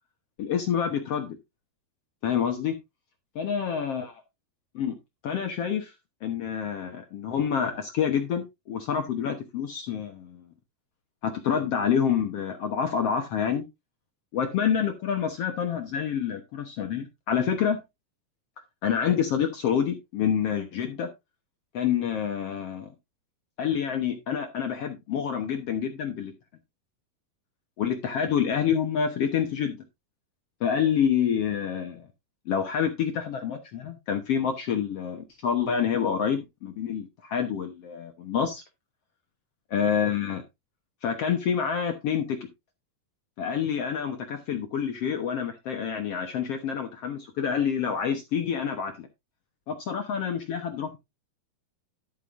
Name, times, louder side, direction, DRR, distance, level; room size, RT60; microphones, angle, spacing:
voice 1, 0.4-1.4 2.2-2.7 3.4-4.1 4.7-4.9 5.2-5.9 6.2-10.4 11.2-13.6 14.3-17.8 18.8-21.1 21.7-22.9 23.6-26.3 27.8-29.8 30.6-32.0 32.5-38.6 39.7-40.4 41.0-42.4 43.4-49.1 49.7-51.0, left 8 dB, 80° left, 5 dB, 1.3 m, -27 dB
12.0 x 8.3 x 2.6 m, 0.22 s
omnidirectional pair, 4.6 m